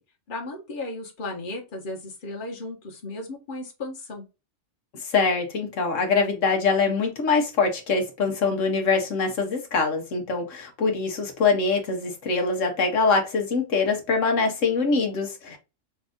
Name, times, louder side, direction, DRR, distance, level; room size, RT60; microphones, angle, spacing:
voice 1, 0.3-4.2 15.5-15.6, left 2 dB, 45° left, 1.3 m, -35 dB
voice 2, 5.0-15.6, left 4 dB, 80° left, 1.3 m, -24 dB
5.2 x 2.6 x 3.5 m
omnidirectional pair, 1.3 m